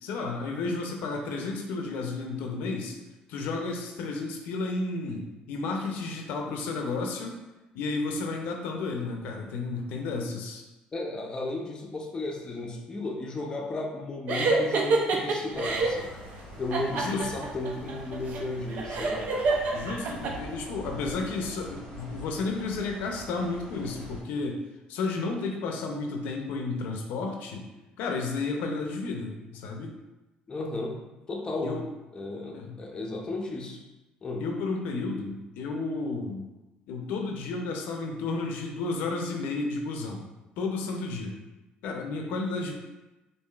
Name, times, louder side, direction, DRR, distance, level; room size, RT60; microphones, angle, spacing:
voice 1, 0.0-3.0 3.3-7.3 7.7-10.6 16.9-17.5 19.7-24.6 24.9-27.6 28.0-29.9 31.6-31.8 32.5-32.7 34.4-36.5 36.9-40.2 40.6-41.3 41.8-42.7, left 3 dB, 75° left, 2 dB, 0.5 m, -32 dB
voice 2, 10.9-16.2 16.6-19.3 30.5-30.9 31.3-31.7 32.1-33.8 34.2-34.4, left 2 dB, 25° left, 0 dB, 0.6 m, -34 dB
sound 1, 14.3-16.0 16.7-20.3, right 3 dB, 60° right, 0.5 m, -27 dB
sound 2, 15.5-24.2, equal, 80° right, 1.3 m, -44 dB
4.7 x 2.6 x 2.3 m, 1.0 s
cardioid pair, 110°, 3 cm